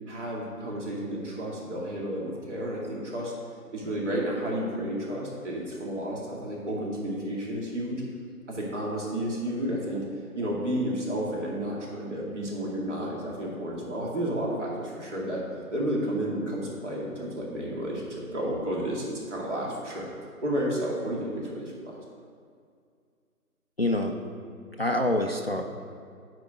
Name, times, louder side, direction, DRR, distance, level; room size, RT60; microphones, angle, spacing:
voice 1, 0.1-3.3 3.7-8.0 8.5-10.0 10.3-15.4 15.7-20.1 20.4-21.7, right 1 dB, 50° right, -3 dB, 2.4 m, -31 dB
voice 2, 23.8-24.2 24.8-25.6, left 1 dB, 45° left, 4 dB, 0.4 m, -26 dB
9.6 x 4.8 x 6.5 m, 2.2 s
figure-of-eight pair, 155°, 45 cm